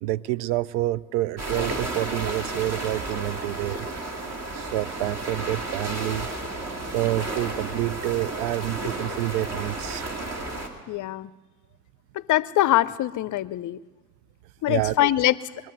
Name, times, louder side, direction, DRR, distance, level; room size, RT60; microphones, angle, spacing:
voice 1, 0.0-3.9 4.5-6.3 6.9-10.0 14.7-15.1, right 16 dB, 60° right, 20 dB, 0.5 m, -28 dB
sound 1, 1.4-10.7, right 2 dB, 35° right, 2.6 m, -32 dB
voice 2, 10.9-11.3 12.1-13.8 14.6-15.4, left 14 dB, 40° left, 19 dB, 0.6 m, -23 dB
22.0 x 7.7 x 8.0 m, 1.3 s
hypercardioid pair, 55°, 45 cm